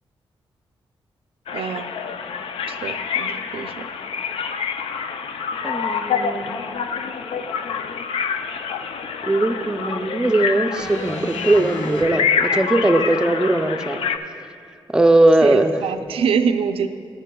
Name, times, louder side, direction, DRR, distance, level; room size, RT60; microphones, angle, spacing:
sound 1, 1.5-14.2, left 6 dB, 80° left, 0.4 m, -27 dB
voice 1, 1.5-1.9 2.7-3.9 15.4-16.9, right 6 dB, 80° right, 8 dB, 0.4 m, -24 dB
voice 2, 5.6-6.5 9.2-14.0 14.9-15.8, right 2 dB, 10° right, 6 dB, 0.5 m, -19 dB
sound 2, 10.7-12.0 13.0-13.1, left 1 dB, 30° left, 1.6 m, -33 dB
15.5 x 9.9 x 2.2 m, 2.3 s
cardioid pair, 95°, 10 cm